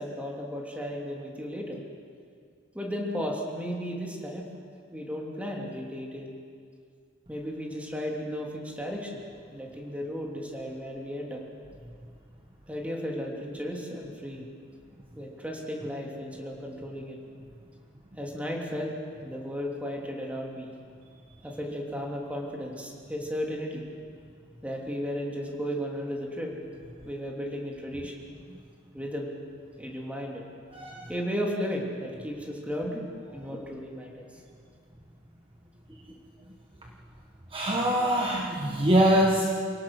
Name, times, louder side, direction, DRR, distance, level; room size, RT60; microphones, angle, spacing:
voice 1, 0.0-1.8 2.7-4.5 4.9-6.3 7.3-9.2 9.5-11.4 12.7-14.5 15.1-17.2 18.1-20.7 21.4-23.8 24.6-26.5 27.0-28.1 28.9-29.3 29.8-30.4 31.1-33.1 33.3-34.3 36.1-36.2, equal, 5° right, -1 dB, 3.1 m, -34 dB
voice 2, 30.7-31.1 37.5-39.5, right 1 dB, 25° right, 0 dB, 1.4 m, -24 dB
27.5 x 17.5 x 6.3 m, 2.2 s
head